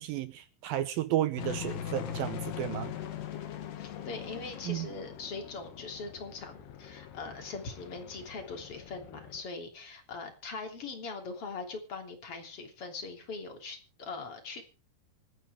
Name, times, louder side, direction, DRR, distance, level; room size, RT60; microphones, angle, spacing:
voice 1, 0.0-2.9 4.7-4.9, right 13 dB, 75° right, 2.3 m, -32 dB
sound 1, 1.4-9.4, left 9 dB, 80° left, 3.8 m, -41 dB
voice 2, 3.8-14.6, left 4 dB, 35° left, 3.7 m, -41 dB
26.0 x 9.8 x 3.5 m
omnidirectional pair, 4.7 m